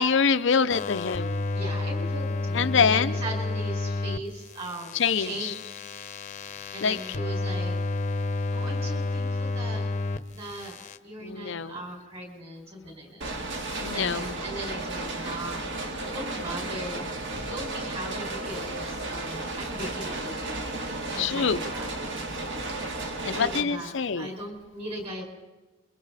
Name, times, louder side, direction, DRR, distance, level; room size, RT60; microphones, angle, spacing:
voice 1, 0.0-1.4 2.5-3.1 4.9-5.5 6.8-7.0 11.2-11.8 13.8-14.3 21.2-21.7 23.2-24.3, left 6 dB, 55° left, 10 dB, 0.6 m, -25 dB
sound 1, 0.7-4.2 4.5-10.2 10.5-11.0, left 2 dB, 35° left, 0.8 m, -30 dB
voice 2, 1.5-5.5 6.7-7.8 8.5-9.9 10.3-10.8 11.0-15.7 15.9-17.0 17.5-20.7 21.1-21.9 23.2-25.2, right 1 dB, 30° right, 1 dB, 5.3 m, -38 dB
sound 2, 13.2-23.6, right 2 dB, 55° right, 2.2 m, -33 dB
27.5 x 23.5 x 4.1 m, 1.1 s
head